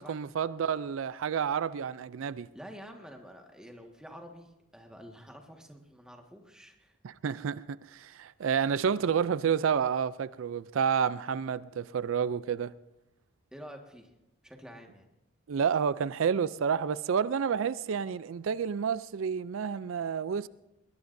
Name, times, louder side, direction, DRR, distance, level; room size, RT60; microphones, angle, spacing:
voice 1, 0.0-2.5 7.0-12.7 15.5-20.5, right 7 dB, 85° right, 0.4 m, -30 dB
voice 2, 2.5-6.9 13.5-14.1 14.4-15.1, equal, 5° right, 1.6 m, -48 dB
21.5 x 21.5 x 2.7 m
head